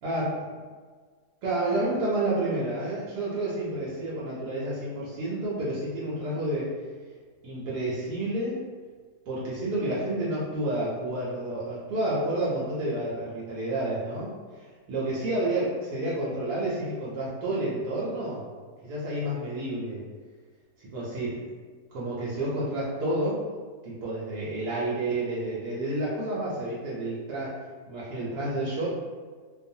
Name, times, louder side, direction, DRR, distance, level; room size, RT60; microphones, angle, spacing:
voice 1, 0.0-0.4 1.4-6.7 7.4-8.6 9.3-18.4 18.8-20.0 20.8-21.4 21.9-23.4 23.8-27.6 27.9-28.9, right 1 dB, 85° right, -8 dB, 1.2 m, -30 dB
2.6 x 2.3 x 2.6 m, 1.6 s
omnidirectional pair, 1.7 m